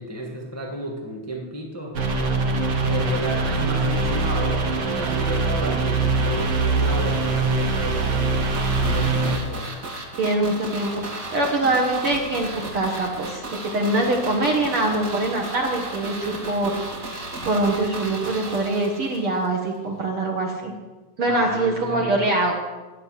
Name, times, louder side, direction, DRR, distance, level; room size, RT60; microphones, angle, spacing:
voice 1, 0.0-2.0 2.8-9.6 21.3-22.2, equal, 25° left, -1 dB, 0.3 m, -32 dB
sound 1, 1.9-9.4, right 3 dB, 70° right, 1.0 m, -23 dB
sound 2, 8.5-19.5 19.7-19.8, right 2 dB, 30° right, 2.1 m, -35 dB
voice 2, 10.2-16.7 17.1-20.7 21.2-22.5, right 2 dB, 55° right, 0 dB, 1.7 m, -24 dB
12.5 x 7.6 x 9.3 m, 1.2 s
omnidirectional pair, 4.0 m